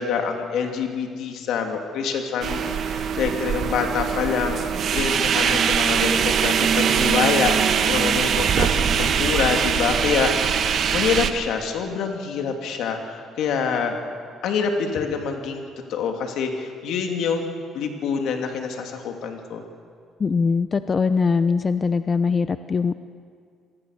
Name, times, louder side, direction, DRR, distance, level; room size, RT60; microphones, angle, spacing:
voice 1, 0.0-4.6 4.9-10.6 10.9-14.0 14.4-19.6, left 6 dB, 75° left, 3 dB, 2.8 m, -26 dB
sound 1, 2.4-11.3, right 7 dB, 55° right, 1.4 m, -22 dB
voice 2, 20.2-22.9, left 5 dB, 35° left, 11 dB, 0.6 m, -21 dB
26.0 x 19.5 x 6.7 m, 2.1 s
cardioid pair, 100°, 0 cm